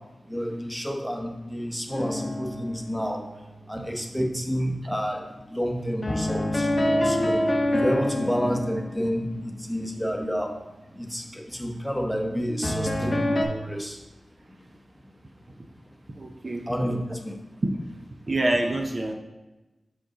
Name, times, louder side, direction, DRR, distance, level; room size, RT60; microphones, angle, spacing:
voice 1, 0.3-3.3 3.7-5.2 5.5-7.4 7.7-10.6 10.9-14.0 16.7-17.3, equal, 5° left, 1 dB, 0.9 m, -29 dB
sound 1, 1.9-4.2 6.0-9.9 12.6-13.4, left 1 dB, 30° left, 0.7 m, -27 dB
voice 2, 16.1-16.6 18.3-19.1, right 1 dB, 40° right, 2 dB, 0.6 m, -26 dB
6.0 x 5.2 x 3.8 m, 1.1 s
wide cardioid pair, 90°, 0 cm